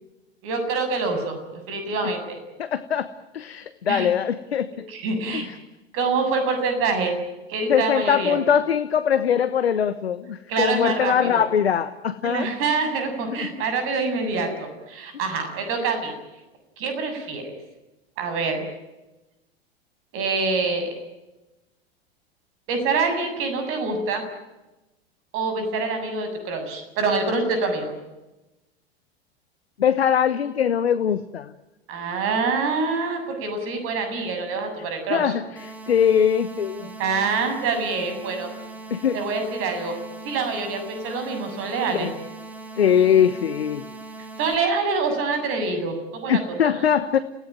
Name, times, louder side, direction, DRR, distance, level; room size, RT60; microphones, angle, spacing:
voice 1, 0.4-2.4 3.9-4.1 4.9-5.5 5.9-7.2 7.5-8.4 10.5-11.4 12.2-16.1 16.8-17.6 18.2-18.6 20.1-20.9 22.7-24.3 25.3-27.9 31.9-35.3 37.0-38.5 39.1-40.0 40.2-42.1 44.4-46.4, right 4 dB, 45° right, 7 dB, 7.4 m, -25 dB
voice 2, 2.6-4.7 5.3-5.5 7.7-12.5 13.3-13.5 29.8-31.5 35.1-36.9 38.9-39.2 41.9-42.1 42.8-43.9 46.3-47.2, left 8 dB, 75° left, 13 dB, 1.2 m, -22 dB
sound 1, 35.6-44.6, right 3 dB, 5° right, 4.5 m, -40 dB
30.0 x 18.0 x 9.0 m, 1.0 s
figure-of-eight pair, 90°, 32 cm